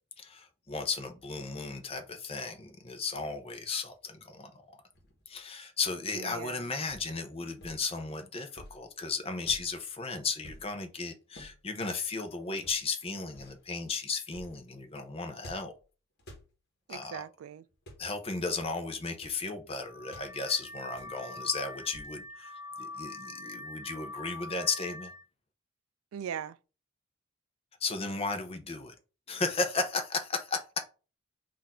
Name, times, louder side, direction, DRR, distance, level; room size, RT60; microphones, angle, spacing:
voice 1, 0.2-4.6 5.3-15.7 16.9-17.2 18.0-22.5 22.8-25.1 27.8-28.9 29.3-30.8, left 4 dB, 30° left, 0.6 m, -35 dB
sound 1, 4.9-5.4 6.9-7.1 7.6-7.9 8.5-8.9 9.5-9.8 10.4-10.7 11.3-11.6 12.6-12.9 13.3-13.6 14.3-14.6 15.4-15.8 16.2-16.5 17.7-18.1 18.6-18.7 19.1-19.4 20.1-20.3 20.9-21.2 21.9-22.3, equal, 50° left, 1.1 m, -51 dB
voice 2, 6.1-6.7 16.9-17.6 26.1-26.6, right 8 dB, 90° right, 0.3 m, -40 dB
Car / Alarm, 19.8-25.2, left 2 dB, 20° right, 0.5 m, -44 dB
4.1 x 2.5 x 4.2 m
head